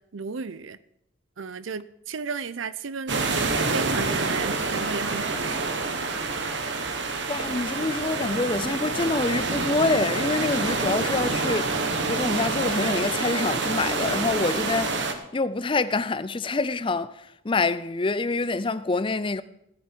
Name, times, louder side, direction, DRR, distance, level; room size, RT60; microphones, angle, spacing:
voice 1, 0.1-0.8 1.4-3.4 3.7-5.8, right 5 dB, 90° right, 0.6 m, -34 dB
sound 1, 3.1-15.1, right 3 dB, 65° right, 1.2 m, -27 dB
voice 2, 7.3-11.8 12.1-15.0 15.3-19.4, left 3 dB, 25° left, 0.5 m, -26 dB
16.5 x 9.8 x 4.6 m
head